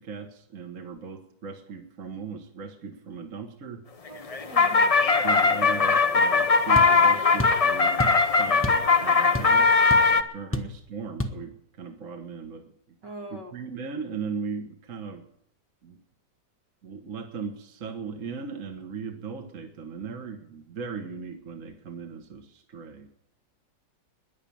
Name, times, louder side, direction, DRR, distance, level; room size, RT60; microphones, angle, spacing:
voice 1, 0.0-3.8 5.2-12.7 13.3-15.3 15.8-16.0 16.8-23.1, right 5 dB, 45° right, 5 dB, 1.8 m, -38 dB
sound 1, 4.1-10.2, left 4 dB, 50° left, 0.4 m, -20 dB
voice 2, 4.1-4.8 13.0-13.5, right 2 dB, 70° right, 2 dB, 2.7 m, -41 dB
sound 2, 6.7-6.9 7.4-7.6 8.0-8.2 8.6-8.9 9.1-9.6 9.9-10.0 10.5-10.8 11.2-11.4, left 1 dB, 10° left, 0.9 m, -29 dB
15.0 x 10.5 x 8.7 m, 0.73 s
omnidirectional pair, 2.0 m